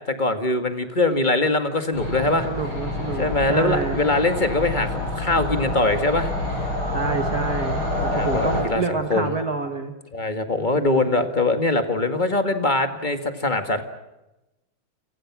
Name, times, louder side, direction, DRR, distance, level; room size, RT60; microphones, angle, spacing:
voice 1, 0.1-2.5 3.2-6.3 8.1-9.3 10.1-13.8, left 2 dB, 25° left, 8 dB, 2.0 m, -22 dB
sound 1, 1.9-8.6, left 1 dB, 85° left, 7.1 m, -27 dB
voice 2, 2.4-4.0 6.9-9.9 10.7-11.3, right 4 dB, 50° right, 6 dB, 2.0 m, -28 dB
29.5 x 26.0 x 6.2 m, 0.98 s
omnidirectional pair, 2.3 m